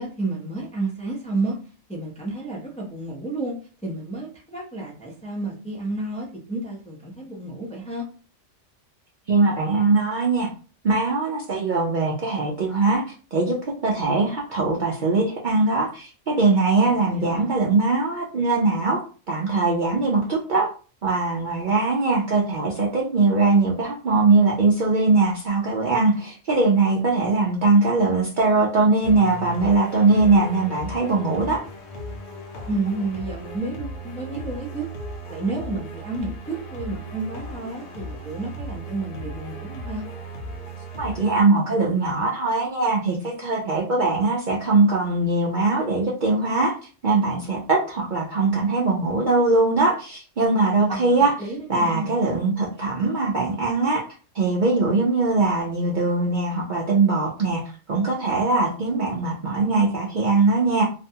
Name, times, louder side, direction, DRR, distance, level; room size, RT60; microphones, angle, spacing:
voice 1, 0.0-1.5 1.9-3.5 3.8-8.0 16.8-17.5 32.7-40.0 50.9-52.1, right 2 dB, 10° left, -3 dB, 0.4 m, -31 dB
voice 2, 9.3-10.5 10.8-13.0 13.3-13.6 13.8-19.0 19.3-20.7 21.0-31.7 41.0-46.7 47.0-54.0 54.3-60.8, right 3 dB, 55° right, -3 dB, 0.5 m, -21 dB
sound 1, 29.0-41.4, right 1 dB, 70° left, 0.8 m, -36 dB
2.5 x 2.2 x 2.7 m, 0.37 s
omnidirectional pair, 1.2 m